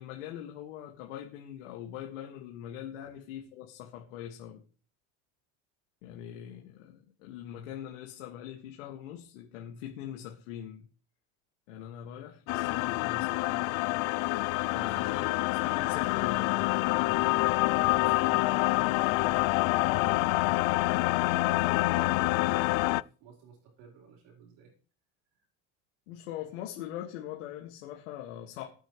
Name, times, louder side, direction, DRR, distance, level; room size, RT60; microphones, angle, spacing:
voice 1, 0.0-4.6 6.0-10.9 11.7-13.7 14.7-15.2 15.6-17.3 26.1-28.6, left 11 dB, 90° left, 2.1 m, -42 dB
sound 1, 12.5-23.0, left 21 dB, 70° left, 0.5 m, -27 dB
voice 2, 14.7-15.1 17.7-19.4 19.7-24.8, right 5 dB, 75° right, 4.5 m, -51 dB
19.5 x 8.8 x 3.3 m
supercardioid pair, 115°, 36 cm